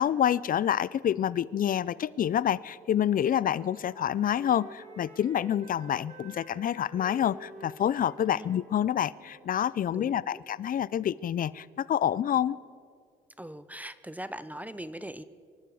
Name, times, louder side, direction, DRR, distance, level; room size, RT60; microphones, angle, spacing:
voice 1, 0.0-12.6, left 10 dB, 45° left, 20 dB, 0.4 m, -27 dB
Wind instrument woodwind instrument, 2.8-9.5, right 1 dB, 35° right, 2.3 m, -50 dB
voice 2, 9.9-10.4 13.4-15.2, right 1 dB, 10° right, 14 dB, 0.6 m, -40 dB
25.0 x 12.0 x 4.8 m, 2.1 s
cardioid pair, 90°, 20 cm